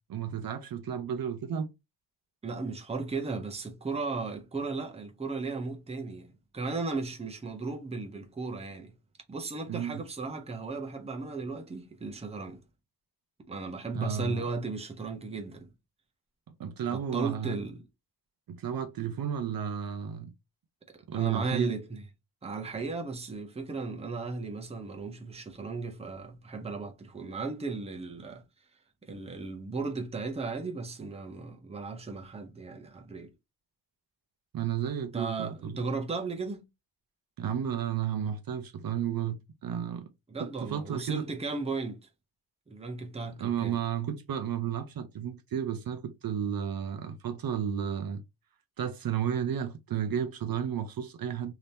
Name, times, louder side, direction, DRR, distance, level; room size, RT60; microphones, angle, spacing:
voice 1, 0.1-1.7 9.7-10.0 13.9-14.4 16.6-17.5 18.5-20.3 21.1-21.7 34.5-35.8 37.4-40.1 40.4-41.3 43.4-48.2 48.8-51.5, right 8 dB, 60° right, 0.5 m, -32 dB
voice 2, 2.4-8.9 9.3-12.6 13.5-15.7 16.9-17.8 20.9-22.0 22.4-28.4 29.0-33.3 35.1-36.6 40.3-42.0 42.7-43.8, right 4 dB, 15° right, 0.6 m, -36 dB
3.4 x 2.8 x 2.6 m
wide cardioid pair, 150°, 41 cm